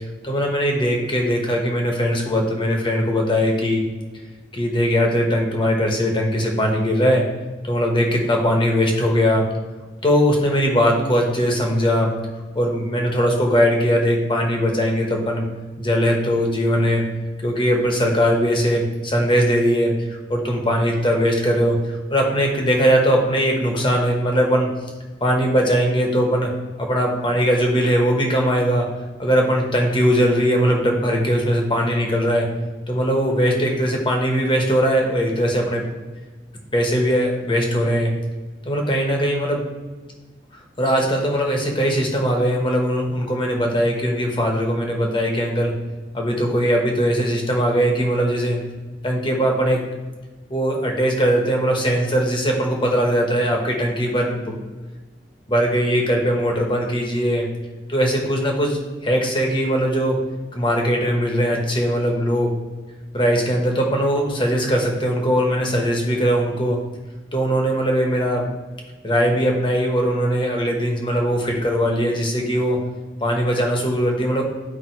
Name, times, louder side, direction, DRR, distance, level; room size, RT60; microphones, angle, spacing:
voice 1, 0.2-3.8 4.5-7.2 7.6-9.4 10.0-12.1 12.5-15.4 15.8-17.0 17.4-19.9 20.3-24.7 25.2-26.5 26.8-28.9 29.2-32.5 32.9-35.8 36.7-38.1 38.6-39.6 40.8-45.7 46.1-48.6 49.0-49.8 50.5-54.5 55.5-57.4 57.9-60.2 60.5-62.5 63.1-66.8 67.3-68.5 69.0-72.8 73.2-74.4, equal, 30° left, 1 dB, 1.2 m, -20 dB
10.0 x 3.5 x 4.6 m, 1.3 s
head